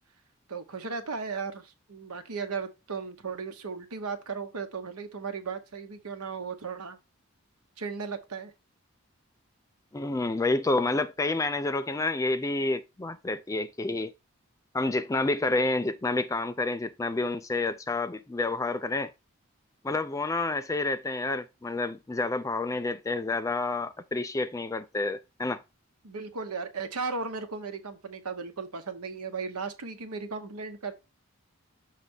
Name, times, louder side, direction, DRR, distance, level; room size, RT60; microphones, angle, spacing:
voice 1, 0.5-7.0 7.8-8.5 26.0-30.9, right 5 dB, 90° right, 1.0 m, -36 dB
voice 2, 9.9-14.1 14.7-19.1 19.8-25.6, left 2 dB, 15° left, 0.3 m, -29 dB
6.7 x 3.3 x 5.3 m
head